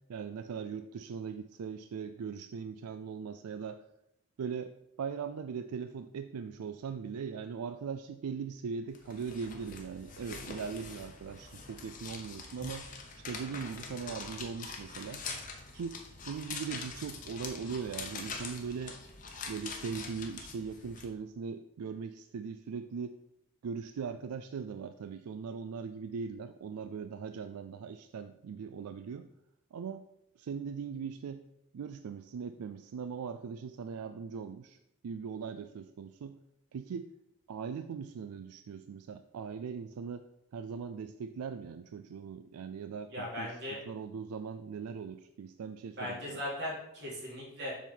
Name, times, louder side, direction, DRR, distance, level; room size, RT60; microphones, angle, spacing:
voice 1, 0.1-3.8 4.4-12.9 13.2-15.2 15.7-16.0 16.3-19.0 19.5-23.2 23.6-29.3 29.7-30.0 30.4-31.4 31.7-34.8 35.0-36.4 36.7-37.1 37.5-43.5 43.9-46.4, right 6 dB, 85° right, 10 dB, 0.4 m, -40 dB
sound 1, 8.9-21.1, left 4 dB, 35° left, 0.9 m, -44 dB
voice 2, 43.1-43.8 46.0-47.7, left 1 dB, 50° right, -5 dB, 3.1 m, -38 dB
7.1 x 4.0 x 6.0 m, 0.83 s
head